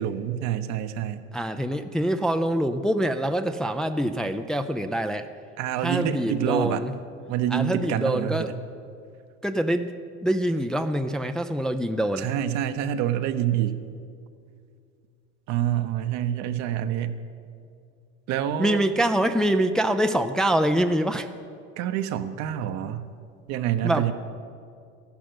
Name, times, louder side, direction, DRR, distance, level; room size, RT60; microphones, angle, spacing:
voice 1, 0.0-1.2 5.6-6.8 7.3-8.4 12.2-13.8 15.5-17.2 18.3-18.8 21.8-23.1 23.5-24.1, right 10 dB, 60° right, 9 dB, 1.0 m, -27 dB
voice 2, 1.3-5.3 5.8-6.9 7.5-8.5 9.4-9.9 10.2-12.3 18.6-21.3 23.8-24.1, right 1 dB, ahead, 7 dB, 0.5 m, -25 dB
14.0 x 12.0 x 7.9 m, 2.4 s
supercardioid pair, 110°, 31 cm